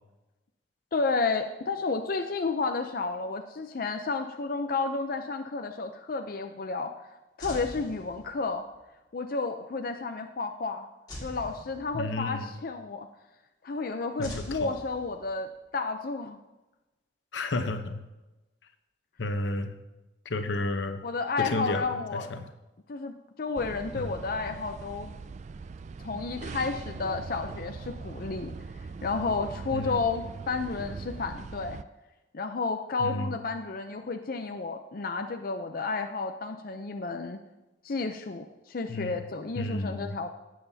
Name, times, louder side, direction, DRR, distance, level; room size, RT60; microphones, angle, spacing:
voice 1, 0.9-6.9 7.4-8.6 9.1-10.9 11.2-13.1 13.6-16.4 21.0-22.3 22.9-25.1 26.0-28.5 29.0-31.8 32.3-37.4 37.8-40.3, left 4 dB, 50° left, 5 dB, 0.5 m, -31 dB
sound 1, 7.4-8.7 11.1-12.4 14.2-15.5, equal, 25° left, 2.1 m, -43 dB
voice 2, 11.9-12.5 14.2-14.7 17.3-18.0 19.2-19.7 20.2-21.0 21.4-22.4 24.0-24.1 29.7-30.0 33.0-33.4 38.9-39.2 39.6-40.2, left 2 dB, 85° left, 8 dB, 0.9 m, -32 dB
sound 2, 23.6-31.8, right 4 dB, 40° right, 0.3 m, -41 dB
18.0 x 7.7 x 2.8 m, 1.1 s
head